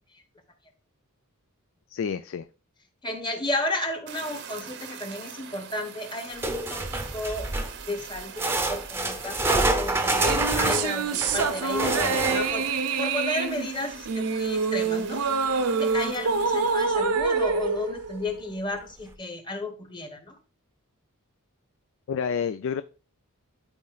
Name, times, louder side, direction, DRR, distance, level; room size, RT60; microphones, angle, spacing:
voice 1, 1.9-2.5 22.1-22.8, left 6 dB, 60° left, 13 dB, 0.3 m, -29 dB
voice 2, 3.0-7.5 7.9-12.7 13.0-15.2 15.8-20.4, left 2 dB, 20° left, 6 dB, 1.1 m, -33 dB
Fire, 4.1-16.9, right 7 dB, 55° right, 0.8 m, -43 dB
sound 1, 6.4-7.8 8.4-12.7 15.9-16.0 16.4-16.5 17.2-17.3, right 2 dB, 10° right, 0.7 m, -27 dB
sound 2, 10.1-18.7, right 4 dB, 85° right, 0.8 m, -26 dB
12.5 x 4.2 x 2.4 m, 0.34 s
head